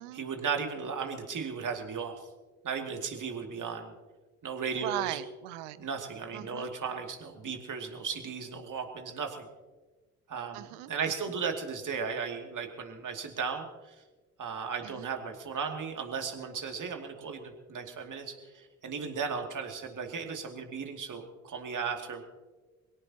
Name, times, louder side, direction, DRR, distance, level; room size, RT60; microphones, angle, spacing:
voice 1, 0.0-2.2 2.6-3.9 4.4-5.2 5.8-9.5 10.3-14.0 14.4-22.2, right 5 dB, 45° right, 4 dB, 2.6 m, -36 dB
voice 2, 4.8-5.8 6.3-6.7 10.5-11.3 14.8-15.1, right 16 dB, 75° right, 15 dB, 0.9 m, -38 dB
23.0 x 17.5 x 2.9 m, 1.3 s
hypercardioid pair, 45°, 42 cm